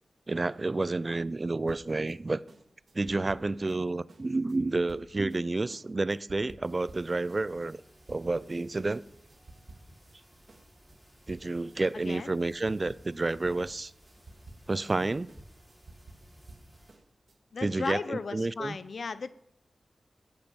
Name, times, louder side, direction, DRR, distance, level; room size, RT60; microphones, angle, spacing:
voice 1, 0.3-2.4 2.9-7.8 8.1-9.0 11.3-13.9 14.7-15.3 17.6-18.8, right 2 dB, 35° right, 0.4 m, -30 dB
sound 1, 1.7-8.6 8.9-10.2 10.5-17.4, right 2 dB, 55° right, 2.0 m, -54 dB
sound 2, 6.6-16.9, right 1 dB, 5° right, 5.4 m, -57 dB
voice 2, 11.9-12.3 17.5-19.3, left 4 dB, 65° left, 0.7 m, -35 dB
14.0 x 8.8 x 7.2 m
wide cardioid pair, 95°, 0 cm